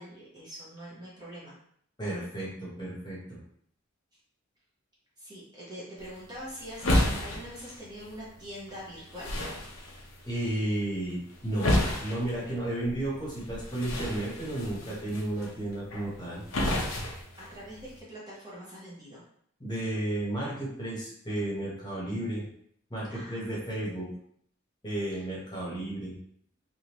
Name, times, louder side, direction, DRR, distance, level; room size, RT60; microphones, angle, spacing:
voice 1, 0.0-1.5 5.2-9.3 17.4-19.2 23.1-23.7 25.1-25.2, equal, 20° right, -7 dB, 0.9 m, -44 dB
voice 2, 2.0-3.4 10.3-11.7 12.0-16.4 19.6-22.5 22.9-24.1 24.8-26.2, right 1 dB, 20° left, -6 dB, 1.1 m, -33 dB
sound 1, 6.0-18.0, left 1 dB, 85° left, 0.7 m, -33 dB
3.5 x 2.5 x 3.0 m, 0.65 s
head